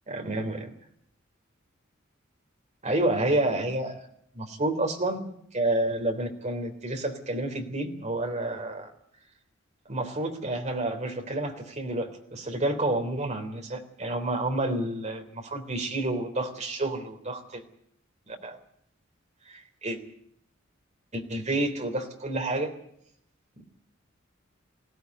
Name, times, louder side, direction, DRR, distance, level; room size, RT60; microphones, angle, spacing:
voice 1, 0.1-0.7 2.8-3.9 4.3-5.2 5.5-8.9 9.8-17.6 18.3-18.6 19.5-20.0 21.1-22.7, right 2 dB, 35° right, 5 dB, 3.5 m, -29 dB
21.0 x 16.5 x 9.6 m, 0.70 s
head